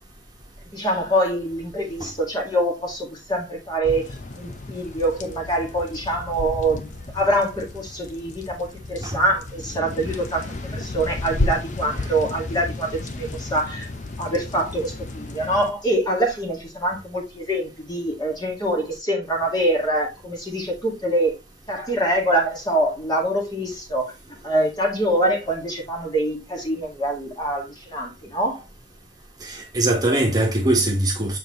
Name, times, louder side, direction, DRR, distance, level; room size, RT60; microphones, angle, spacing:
voice 1, 0.6-13.9 14.2-21.4 21.7-24.1 24.4-28.6, right 1 dB, 20° left, 1.8 m, -24 dB
sound 1, 3.8-15.7, left 2 dB, 40° left, 0.8 m, -33 dB
voice 2, 29.4-31.4, right 1 dB, 20° right, 1.4 m, -21 dB
7.1 x 4.5 x 3.1 m
head